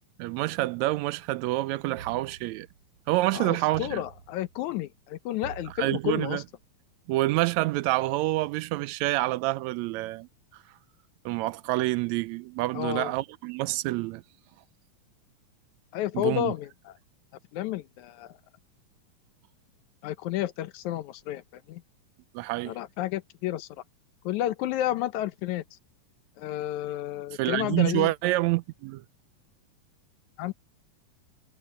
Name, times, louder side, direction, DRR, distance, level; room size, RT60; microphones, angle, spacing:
voice 1, 0.2-2.7 3.1-4.0 5.8-6.4 7.1-10.3 11.3-14.2 16.1-16.5 22.3-22.8 27.4-29.0, right 18 dB, 80° right, 1.7 m, -27 dB
sound 1, 2.0-3.1 3.7-4.8 5.4-6.5, right 6 dB, 60° right, 1.8 m, -47 dB
voice 2, 3.3-6.4 12.7-13.1 15.9-16.9 17.5-18.3 20.0-21.8 22.7-23.7 24.3-25.6 26.4-28.1 30.4-30.5, left 13 dB, 75° left, 2.1 m, -31 dB
omnidirectional pair, 3.6 m